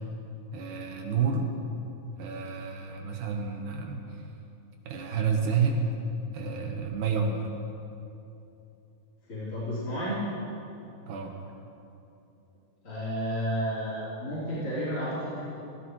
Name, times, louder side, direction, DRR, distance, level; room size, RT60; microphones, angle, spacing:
voice 1, 0.5-1.5 2.2-4.2 4.8-5.8 6.3-7.4 11.1-11.3, right 5 dB, 90° right, 2 dB, 2.8 m, -29 dB
voice 2, 9.3-10.2 12.8-15.4, equal, 45° left, -14 dB, 4.6 m, -31 dB
16.0 x 16.0 x 3.2 m, 2.8 s
omnidirectional pair, 3.5 m